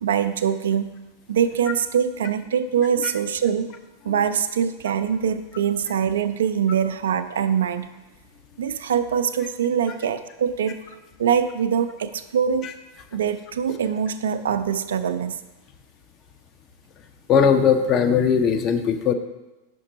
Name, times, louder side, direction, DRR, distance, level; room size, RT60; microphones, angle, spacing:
voice 1, 0.0-0.9 1.3-3.7 4.0-7.9 8.6-10.8 11.2-12.7 13.1-15.4, right 8 dB, 65° right, 11 dB, 0.3 m, -23 dB
voice 2, 17.3-19.1, left 7 dB, 30° left, 7 dB, 0.5 m, -18 dB
5.8 x 5.2 x 3.9 m, 1.0 s
figure-of-eight pair, 90°, 0 cm